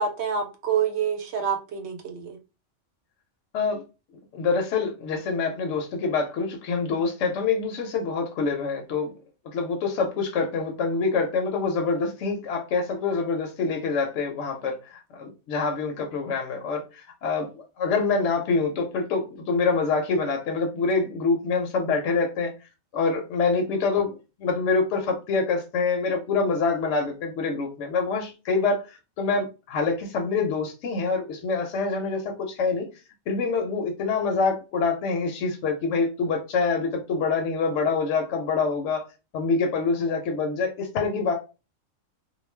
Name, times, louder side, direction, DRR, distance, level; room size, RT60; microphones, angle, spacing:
voice 1, 0.0-2.4, right 7 dB, 65° right, 0.8 m, -27 dB
voice 2, 4.3-9.1 9.5-22.5 22.9-24.1 24.4-32.9 33.3-39.1 39.3-41.3, left 4 dB, 75° left, 0.9 m, -26 dB
2.4 x 2.1 x 3.1 m
omnidirectional pair, 1.3 m